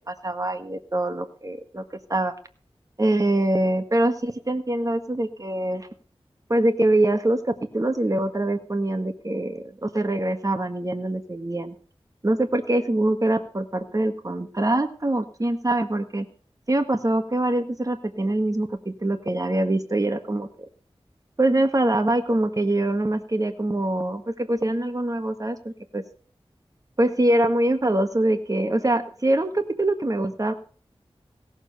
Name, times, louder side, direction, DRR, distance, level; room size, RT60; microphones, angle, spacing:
voice 1, 0.1-2.3 3.0-5.9 6.5-11.7 12.2-16.3 16.7-20.5 21.4-26.0 27.0-30.5, right 1 dB, 35° right, 7 dB, 1.5 m, -24 dB
17.5 x 7.3 x 6.8 m, 0.42 s
wide cardioid pair, 55°, 11 cm